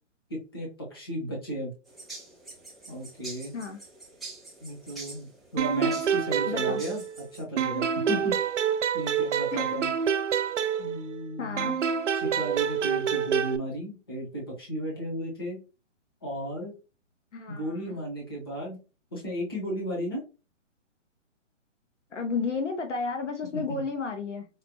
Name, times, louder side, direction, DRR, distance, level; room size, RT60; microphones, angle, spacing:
voice 1, 0.3-1.7 2.9-3.5 4.6-5.3 5.5-7.0 7.3-8.3 8.9-9.9 10.8-11.7 12.1-15.6 16.2-16.7 17.5-18.8 19.1-20.2 23.5-23.8, equal, 20° left, 0.8 m, -34 dB
sound 1, 1.9-7.4, right 3 dB, ahead, 0.4 m, -46 dB
sound 2, 5.6-7.3 7.6-11.2 11.6-13.6, right 8 dB, 70° right, 0.6 m, -27 dB
voice 2, 6.5-6.8 9.5-9.6 11.4-11.8 17.3-18.0 22.1-24.5, left 4 dB, 70° left, 0.8 m, -32 dB
4.9 x 2.1 x 2.9 m
hypercardioid pair, 180°, 37 cm